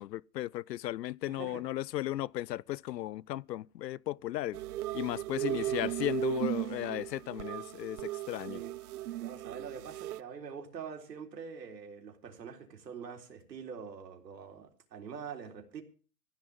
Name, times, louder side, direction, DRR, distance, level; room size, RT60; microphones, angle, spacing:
voice 1, 0.0-4.6 4.9-8.6, left 14 dB, 85° left, 0.6 m, -36 dB
voice 2, 1.3-1.6 5.3-5.9 8.5-8.7 9.2-15.8, right 6 dB, 85° right, 3.9 m, -45 dB
sound 1, 4.5-10.2, right 15 dB, 65° right, 0.6 m, -36 dB
15.5 x 5.9 x 9.4 m
hypercardioid pair, 160°, 48 cm